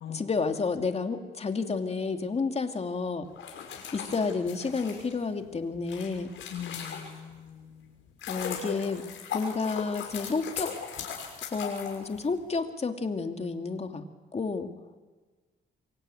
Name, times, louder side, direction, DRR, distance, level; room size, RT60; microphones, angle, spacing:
voice 1, 0.1-3.2 3.9-6.3 8.3-9.0 9.3-10.7 11.5-14.0 14.3-14.7, left 4 dB, 30° left, 5 dB, 2.7 m, -30 dB
sound 1, 3.3-7.4 7.9-12.6, left 7 dB, 80° left, 6.2 m, -38 dB
voice 2, 6.5-7.9, left 8 dB, 65° left, 4 dB, 1.9 m, -41 dB
27.0 x 22.5 x 9.2 m, 1.3 s
cardioid pair, 90°, 20 cm